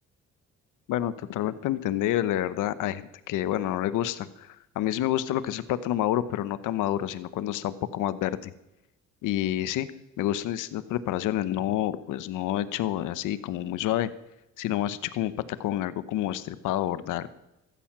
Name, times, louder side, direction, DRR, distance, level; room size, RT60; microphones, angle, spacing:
voice 1, 0.9-8.5 9.2-9.9 10.2-14.1 14.6-15.3 15.6-17.3, left 12 dB, 90° left, 15 dB, 0.9 m, -28 dB
15.0 x 13.5 x 6.0 m, 0.92 s
cardioid pair, 90°, 30 cm